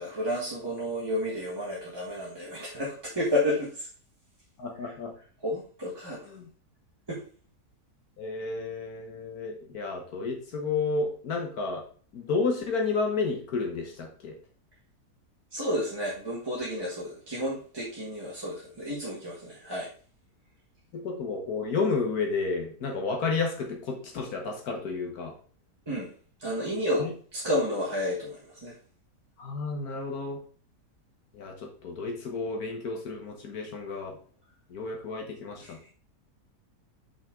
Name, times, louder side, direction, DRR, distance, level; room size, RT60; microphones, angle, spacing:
voice 1, 0.0-3.9 4.8-4.9 5.4-6.2 7.1-7.2 15.5-19.9 25.9-26.1 26.4-27.0 27.3-28.7 35.6-35.9, left 1 dB, 15° right, -6 dB, 1.2 m, -31 dB
voice 2, 4.6-5.1 6.3-6.5 8.2-11.8 12.1-14.4 20.9-25.3 27.0-27.1 29.4-30.4 31.3-31.5 31.8-34.2 34.7-35.8, left 4 dB, 65° left, 1 dB, 1.5 m, -31 dB
5.8 x 5.5 x 3.6 m, 0.43 s
omnidirectional pair, 1.8 m